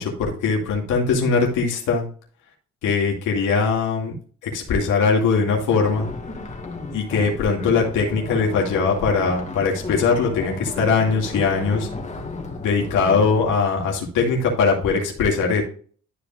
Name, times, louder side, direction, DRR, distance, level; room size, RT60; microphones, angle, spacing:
voice 1, 0.0-2.1 2.8-4.1 4.4-6.1 6.9-11.9 12.6-15.6, left 5 dB, 85° left, -1 dB, 2.4 m, -21 dB
sound 1, 5.8-13.5, left 3 dB, 25° left, 2.0 m, -33 dB
12.5 x 5.0 x 2.5 m, 0.43 s
cardioid pair, 90°, 30 cm